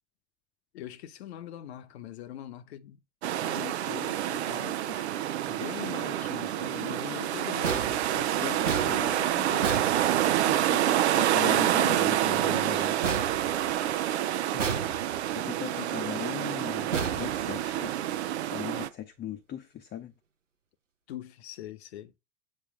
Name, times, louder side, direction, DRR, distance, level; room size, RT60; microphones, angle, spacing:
voice 1, 0.7-3.0 3.4-5.1 5.5-9.8 21.1-22.1, left 11 dB, 60° left, 1.1 m, -42 dB
sound 1, 3.2-18.9, right 12 dB, 60° right, 0.8 m, -28 dB
sound 2, 7.6-10.7 13.0-14.1 14.6-15.4 16.9-18.0, right 5 dB, 85° right, 1.0 m, -34 dB
voice 2, 8.4-9.1 10.2-13.0 14.5-14.8 15.3-17.9 18.5-20.1, left 11 dB, 25° left, 0.9 m, -39 dB
7.7 x 3.2 x 4.8 m
figure-of-eight pair, 85°, 37 cm